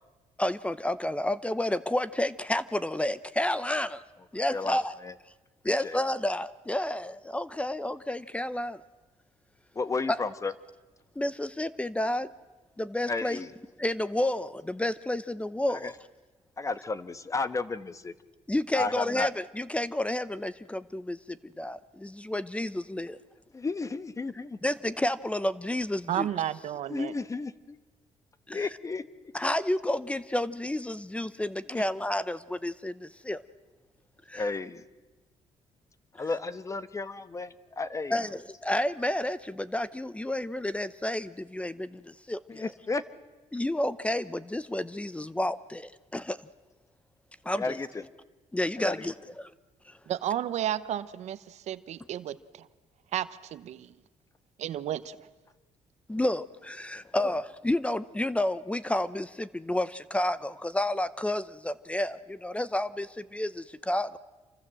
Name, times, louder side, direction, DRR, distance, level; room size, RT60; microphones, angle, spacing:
voice 1, 0.4-4.0 4.3-4.9 5.6-8.8 10.1-10.2 11.2-12.3 12.8-13.4 13.8-15.9 18.5-23.2 24.6-26.3 28.5-28.7 29.3-33.4 34.3-34.5 36.2-36.3 38.1-42.7 43.5-46.4 47.4-47.8 48.5-49.5 49.9-50.0 56.1-64.2, left 1 dB, 10° left, 16 dB, 0.8 m, -30 dB
voice 2, 4.5-5.1 5.6-6.0 9.7-10.5 13.1-13.5 15.7-15.9 16.6-18.1 18.7-19.3 23.5-24.6 26.9-27.8 28.5-29.0 31.7-31.8 34.3-34.8 36.2-38.2 42.5-43.0 47.6-48.0 48.8-49.0 57.2-57.3, left 3 dB, 25° left, 13 dB, 1.2 m, -33 dB
voice 3, 26.1-27.1 50.1-52.7 53.1-53.9 54.6-55.2, right 11 dB, 70° right, 14 dB, 1.0 m, -32 dB
27.5 x 24.5 x 7.7 m, 1.2 s
cardioid pair, 100°, 12 cm